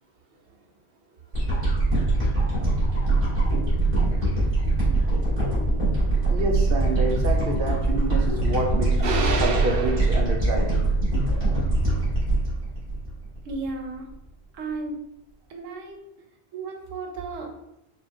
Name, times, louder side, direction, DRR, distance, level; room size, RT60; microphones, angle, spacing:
sound 1, 1.3-13.7 14.1-14.2, right 2 dB, 35° right, 1.6 m, -23 dB
voice 1, 6.3-10.9, right 3 dB, 60° right, 0.7 m, -27 dB
voice 2, 13.4-14.1 14.5-15.0 15.5-16.0 16.5-17.5, right 3 dB, 85° right, 1.1 m, -34 dB
5.3 x 2.3 x 2.6 m
omnidirectional pair, 1.3 m